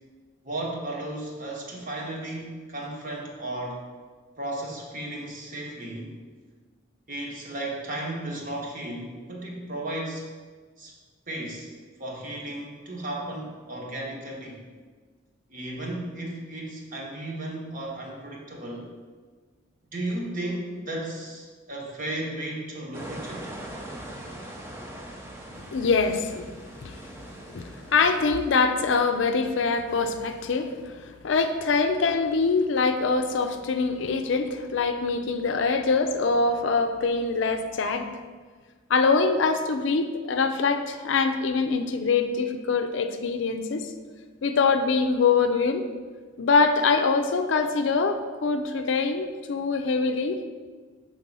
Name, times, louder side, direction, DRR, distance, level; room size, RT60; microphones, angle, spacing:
voice 1, 0.4-3.8 4.4-6.1 7.1-10.2 10.8-10.9 11.3-11.7 12.0-14.6 15.5-18.9 19.9-23.5, right 1 dB, 45° right, -2 dB, 1.2 m, -34 dB
sound 1, 22.9-28.5, right 1 dB, 10° right, 0.6 m, -41 dB
voice 2, 25.6-26.5 26.8-27.0 27.5-38.1 38.9-43.9 44.4-45.9 46.4-50.4, left 4 dB, 65° left, 7 dB, 0.4 m, -24 dB
6.0 x 3.7 x 5.3 m, 1.5 s
head